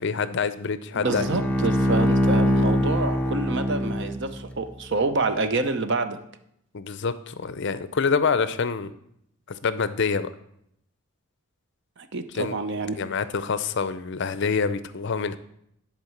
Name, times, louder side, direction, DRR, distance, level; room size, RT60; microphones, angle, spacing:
voice 1, 0.0-1.2 6.7-8.9 9.5-10.3 12.3-12.5 12.9-15.4, left 5 dB, 50° left, 13 dB, 0.5 m, -26 dB
voice 2, 0.9-6.2 12.0-13.0, right 3 dB, 50° right, 9 dB, 0.7 m, -27 dB
Bowed string instrument, 1.0-4.5, equal, 5° left, 0.6 m, -23 dB
11.0 x 4.4 x 7.1 m, 0.75 s
head